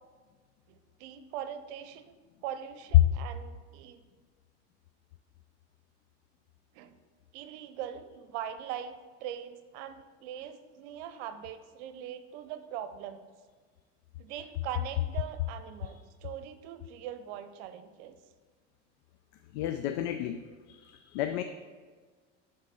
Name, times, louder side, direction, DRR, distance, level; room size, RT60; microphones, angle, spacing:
voice 1, 0.7-2.1 2.4-4.0 6.7-6.9 7.3-13.2 14.2-18.2, right 10 dB, 75° right, 11 dB, 0.7 m, -41 dB
voice 2, 19.5-21.4, left 11 dB, 75° left, 8 dB, 0.5 m, -34 dB
9.8 x 3.9 x 4.2 m, 1.5 s
supercardioid pair, 90°, 34 cm